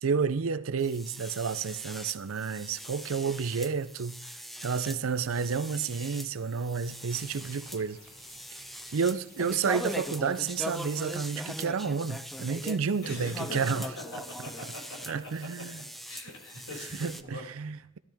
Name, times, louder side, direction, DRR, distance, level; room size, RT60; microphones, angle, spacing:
voice 1, 0.0-8.0 8.9-13.8 15.1-15.8 17.0-18.0, right 5 dB, 90° right, 0.5 m, -30 dB
sound 1, 0.8-17.2, equal, ahead, 0.6 m, -41 dB
sound 2, 6.9-11.3, left 1 dB, 40° left, 5.2 m, -56 dB
voice 2, 13.0-13.7 14.3-15.1 16.0-17.4, left 1 dB, 90° left, 6.2 m, -42 dB
16.5 x 12.0 x 3.5 m
head